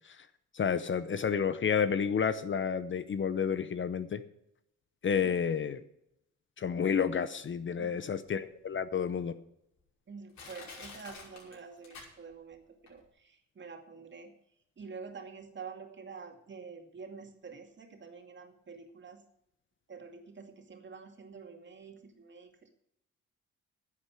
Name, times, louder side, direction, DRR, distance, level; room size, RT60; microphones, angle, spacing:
voice 1, 0.5-4.2 5.0-5.8 6.6-9.3, left 7 dB, 40° left, 13 dB, 0.8 m, -30 dB
Crushing, 8.3-8.4 9.0-9.1 9.8-9.9 10.3-12.5 12.9-13.0, left 4 dB, 70° left, 5.6 m, -48 dB
voice 2, 10.1-14.3 14.8-19.2 19.9-22.7, right 5 dB, 40° right, 4 dB, 2.3 m, -48 dB
10.5 x 8.4 x 8.9 m, 0.81 s
cardioid pair, 90°, 30 cm